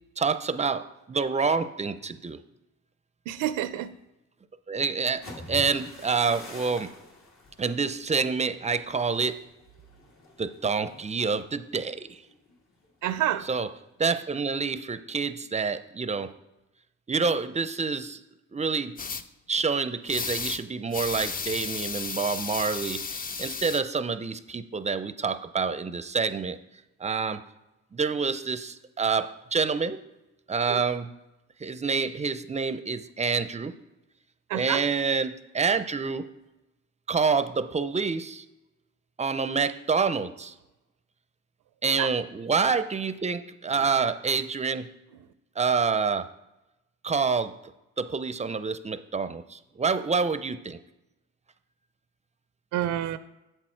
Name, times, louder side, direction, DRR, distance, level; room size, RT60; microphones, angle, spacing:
voice 1, 0.2-2.4 4.7-6.9 7.6-9.4 10.4-12.2 13.4-13.7 14.0-16.3 17.1-18.2 18.5-19.0 19.5-26.6 27.0-27.4 27.9-30.0 30.5-31.2 31.6-33.8 34.5-36.3 37.1-38.5 39.2-40.5 41.8-44.9 45.6-46.3 47.0-47.6 48.0-50.8, right 5 dB, 25° right, 12 dB, 0.5 m, -27 dB
voice 2, 3.3-3.9 13.0-13.4 30.7-30.8 34.5-34.8 42.0-42.1 52.7-53.2, right 12 dB, 90° right, 13 dB, 0.5 m, -28 dB
sound 1, 5.1-12.9 13.3-13.6 14.0-14.4, left 2 dB, 65° left, 2.3 m, -47 dB
sound 2, 19.0-19.2 20.1-20.6 20.9-23.8, left 5 dB, 30° left, 0.5 m, -33 dB
7.9 x 6.3 x 4.5 m, 0.98 s
cardioid pair, 90°, 30 cm